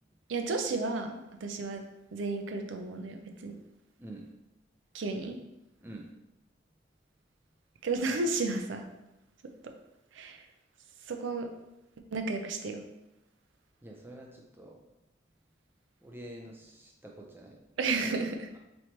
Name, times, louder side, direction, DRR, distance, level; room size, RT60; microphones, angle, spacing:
voice 1, 0.3-3.6 4.9-5.4 7.8-8.9 9.4-9.7 10.1-10.5 11.0-11.5 12.1-12.8 17.8-18.5, right 3 dB, 85° right, 5 dB, 0.5 m, -33 dB
voice 2, 13.8-14.8 16.0-17.6, right 1 dB, 10° right, -1 dB, 0.5 m, -47 dB
4.4 x 3.2 x 2.8 m, 0.94 s
head